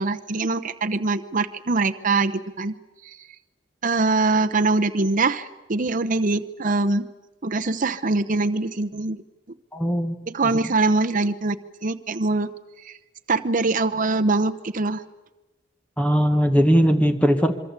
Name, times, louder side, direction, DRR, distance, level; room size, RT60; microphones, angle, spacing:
voice 1, 0.0-2.7 3.8-7.1 7.4-9.2 10.3-11.6 11.8-12.5 13.3-15.0, right 3 dB, 45° right, 7 dB, 0.9 m, -23 dB
voice 2, 9.7-10.1 16.0-17.6, equal, 5° left, 7 dB, 1.2 m, -19 dB
27.0 x 23.5 x 8.2 m, 1.1 s
head